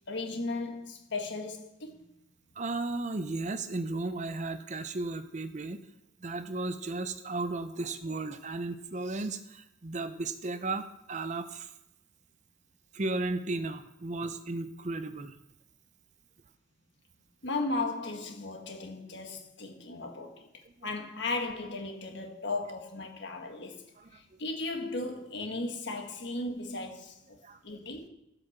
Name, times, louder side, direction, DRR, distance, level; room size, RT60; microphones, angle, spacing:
voice 1, 0.1-2.0 17.4-20.5 20.8-23.8 24.1-27.1 27.6-28.1, left 2 dB, 55° left, 1.6 m, -36 dB
voice 2, 2.6-5.8 6.2-11.7 12.9-15.4 20.6-20.9 24.0-24.4 27.4-27.8, right 2 dB, 35° right, 0.6 m, -35 dB
15.5 x 5.9 x 6.6 m
head